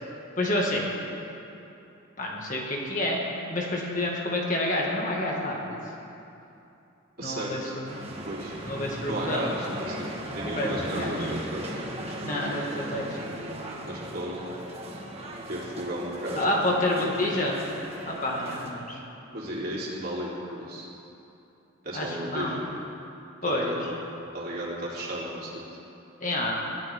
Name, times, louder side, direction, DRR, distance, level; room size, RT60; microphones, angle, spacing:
voice 1, 0.4-0.9 2.2-3.2 3.5-5.8 7.2-8.0 8.6-9.5 10.5-11.3 12.2-13.0 16.4-17.6 18.1-19.0 21.9-22.6 23.4-23.9 26.2-26.5, left 1 dB, 35° left, -2 dB, 2.1 m, -28 dB
voice 2, 7.2-7.8 8.2-8.6 9.1-11.8 13.8-14.4 15.5-16.7 17.0-17.5 19.3-20.9 21.8-22.6 23.4-24.0 24.3-25.5, right 1 dB, 45° right, -6 dB, 3.6 m, -34 dB
sound 1, 7.9-18.7, right 1 dB, 30° right, 1.6 m, -37 dB
22.0 x 15.0 x 3.8 m, 2.9 s
head